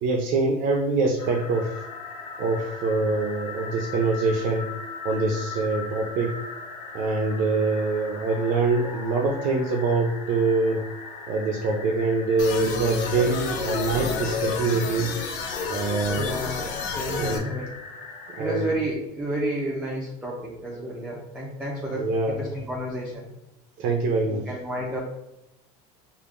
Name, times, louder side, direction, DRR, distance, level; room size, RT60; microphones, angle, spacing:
voice 1, 0.0-1.7 2.4-4.7 5.0-6.3 6.9-10.8 11.3-15.1 15.7-16.2 17.1-17.4 18.4-18.6 22.0-22.4 23.8-24.5, right 3 dB, 60° right, 3 dB, 0.6 m, -24 dB
sound 1, 1.2-18.7, left 4 dB, 40° left, 1.1 m, -39 dB
sound 2, 12.4-17.4, left 5 dB, 65° left, 0.7 m, -30 dB
voice 2, 16.1-17.8 18.4-23.3 24.2-25.0, right 1 dB, 10° right, -4 dB, 0.8 m, -31 dB
5.0 x 2.6 x 2.5 m, 0.88 s
supercardioid pair, 115°, 16 cm